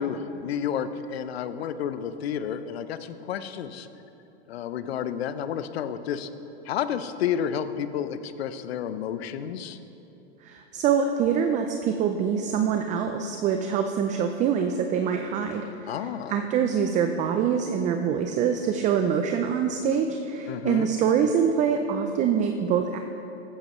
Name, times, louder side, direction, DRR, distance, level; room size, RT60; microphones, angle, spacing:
voice 1, 0.0-3.9 4.5-6.3 6.7-9.8 15.9-16.4 20.5-20.9, left 8 dB, 65° left, 12 dB, 0.8 m, -31 dB
voice 2, 10.4-23.0, right 7 dB, 20° right, 5 dB, 0.5 m, -25 dB
15.0 x 13.5 x 3.2 m, 3.0 s
hypercardioid pair, 125°, 33 cm